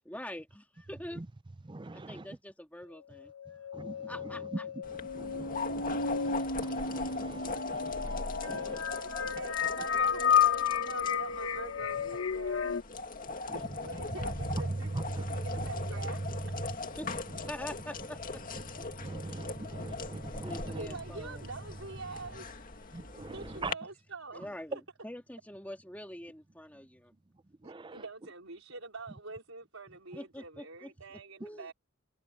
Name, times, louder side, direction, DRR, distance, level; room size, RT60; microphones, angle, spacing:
voice 1, 0.1-1.2 1.9-3.7 4.1-4.7 17.0-17.1 17.5-18.4 20.4-21.5 24.3-27.1 30.1-30.9 31.4-31.7, left 1 dB, 10° left, 2.7 m, -45 dB
voice 2, 1.7-2.2 3.7-4.0 5.1-8.4 14.9-15.2 19.0-20.6 22.9-23.7 27.6-28.0, right 2 dB, 25° right, 0.6 m, -42 dB
sound 1, 3.2-12.8, left 7 dB, 85° left, 1.4 m, -32 dB
sound 2, 4.8-23.7, left 3 dB, 45° left, 2.2 m, -41 dB
voice 3, 8.4-9.1 9.4-15.0 15.3-16.5 20.7-22.5 23.1-24.4 24.7-24.8 27.6-31.7, right 3 dB, 85° right, 4.9 m, -45 dB
head